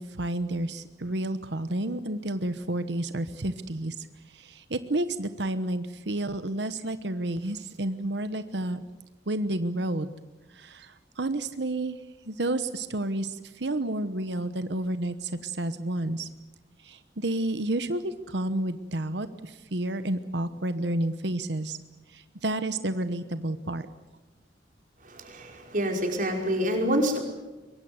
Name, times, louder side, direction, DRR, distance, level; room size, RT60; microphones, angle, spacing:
voice 1, 0.0-3.9 4.4-8.8 9.3-10.1 10.6-10.9 11.2-12.0 12.3-16.3 16.8-21.8 22.1-23.8, right 1 dB, 75° right, 11 dB, 1.1 m, -30 dB
voice 2, 25.0-27.2, equal, 50° right, 2 dB, 5.4 m, -27 dB
23.5 x 23.0 x 8.0 m, 1.1 s
head